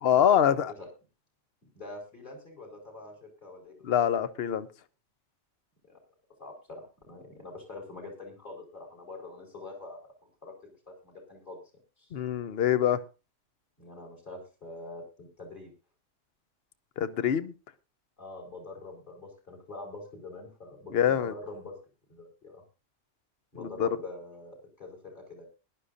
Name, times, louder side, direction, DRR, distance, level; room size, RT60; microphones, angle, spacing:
voice 1, 0.0-0.7 3.9-4.7 12.1-13.0 17.0-17.5 20.9-21.3 23.8-23.9, left 9 dB, 60° left, 1.0 m, -24 dB
voice 2, 1.7-3.9 5.8-6.0 6.4-11.6 12.0-12.1 13.8-15.7 18.2-21.8 22.1-22.6 23.5-25.4, left 2 dB, 40° left, 4.6 m, -45 dB
20.5 x 11.5 x 2.6 m
omnidirectional pair, 1.3 m